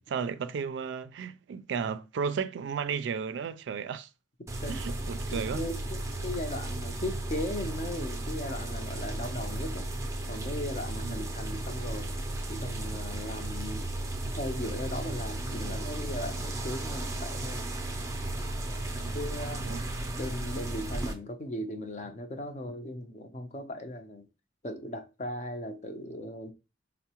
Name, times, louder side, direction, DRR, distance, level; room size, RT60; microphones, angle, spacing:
voice 1, 0.1-4.1 4.7-5.6 11.0-11.2 18.9-19.2 19.6-19.9, right 6 dB, 80° right, 0.3 m, -34 dB
sound 1, 4.5-21.1, right 1 dB, 15° right, 0.4 m, -35 dB
voice 2, 5.3-9.9 10.3-12.1 12.5-13.9 14.2-17.7 19.1-19.7 20.2-24.3 24.6-26.5, left 1 dB, 40° left, 0.6 m, -37 dB
4.4 x 2.1 x 2.8 m
head